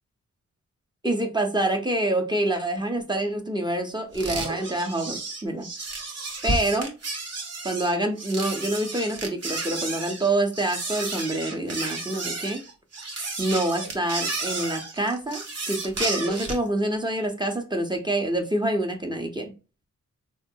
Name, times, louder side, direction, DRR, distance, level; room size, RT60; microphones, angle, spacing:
voice 1, 1.0-5.7 6.4-6.9 7.6-12.6 13.4-15.4 15.7-19.5, right 1 dB, 15° right, 2 dB, 0.6 m, -26 dB
sound 1, 4.1-16.7, right 3 dB, 55° right, 0.9 m, -32 dB
3.7 x 2.2 x 2.6 m, 0.32 s
wide cardioid pair, 105°, 31 cm